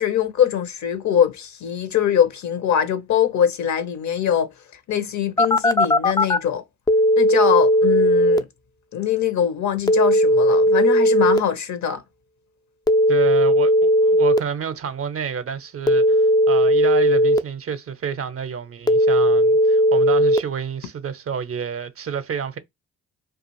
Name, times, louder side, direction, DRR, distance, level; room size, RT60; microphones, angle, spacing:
voice 1, 0.0-4.5 4.9-6.6 7.2-8.4 8.9-12.0, left 9 dB, 55° left, 0.7 m, -22 dB
Telephone, 5.4-6.4 6.9-8.4 9.9-11.4 12.9-14.4 15.9-17.4 18.9-20.4, equal, 10° left, 0.3 m, -16 dB
voice 2, 13.1-22.6, right 7 dB, 40° right, 0.6 m, -29 dB
2.4 x 2.4 x 2.9 m
hypercardioid pair, 45°, 35 cm